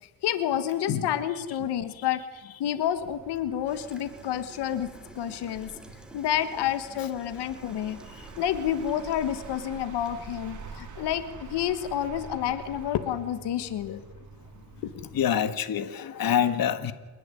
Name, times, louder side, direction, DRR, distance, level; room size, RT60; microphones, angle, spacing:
voice 1, 0.2-2.2 2.6-4.9 5.1-5.7 6.1-8.0 8.4-14.0 14.8-15.1, left 10 dB, 85° left, 1.5 m, -29 dB
sound 1, 2.8-15.4, right 4 dB, 50° right, 3.4 m, -47 dB
Gurgling / Toilet flush, 3.7-10.7, equal, ahead, 3.3 m, -51 dB
voice 2, 15.1-16.9, left 9 dB, 60° left, 1.6 m, -27 dB
29.0 x 11.0 x 9.8 m
cardioid pair, 95°, 39 cm